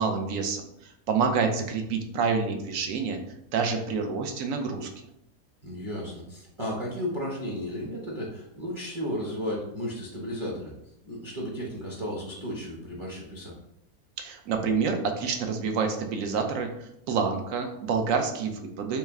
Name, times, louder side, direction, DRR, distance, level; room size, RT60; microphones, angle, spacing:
voice 1, 0.0-3.2 3.5-4.9 14.2-19.0, right 5 dB, 75° right, 5 dB, 1.0 m, -28 dB
voice 2, 5.6-10.7 11.0-13.5, equal, 30° right, -4 dB, 0.6 m, -34 dB
3.2 x 3.2 x 3.5 m, 0.79 s
omnidirectional pair, 1.4 m